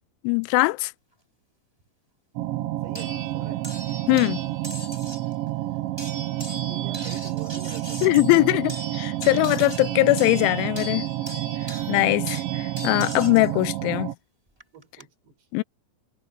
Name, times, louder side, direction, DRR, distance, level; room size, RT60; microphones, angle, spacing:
voice 1, 0.2-0.9 2.6-2.7 4.1-4.4 8.0-11.1 11.9-14.1 15.5-15.6, left 23 dB, 90° left, 2.9 m, -21 dB
sound 1, 2.4-14.1, right 16 dB, 85° right, 3.7 m, -29 dB
voice 2, 2.8-3.7 6.1-8.0 11.7-12.0 13.3-13.7 14.7-15.5, right 8 dB, 65° right, 6.8 m, -46 dB
sound 2, 2.9-5.3 6.0-13.5 14.6-15.0, right 2 dB, 5° right, 6.5 m, -39 dB
omnidirectional pair, 5.3 m